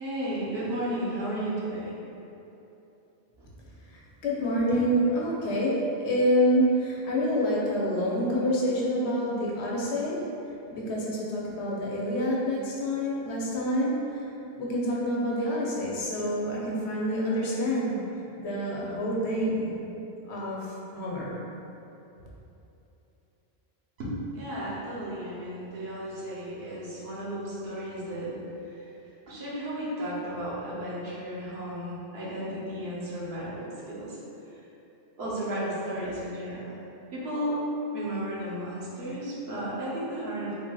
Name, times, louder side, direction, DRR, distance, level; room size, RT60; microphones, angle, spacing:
voice 1, 0.0-1.9 24.0-28.3 28.6-28.9 29.3-34.2 35.2-36.8 37.1-37.6 37.9-40.6, right 1 dB, 75° right, -8 dB, 1.0 m, -34 dB
voice 2, 3.9-10.2 10.7-14.3 14.6-18.0 18.4-19.7 20.3-21.4, equal, 85° left, -4 dB, 0.9 m, -27 dB
3.4 x 2.5 x 2.2 m, 3.0 s
omnidirectional pair, 1.1 m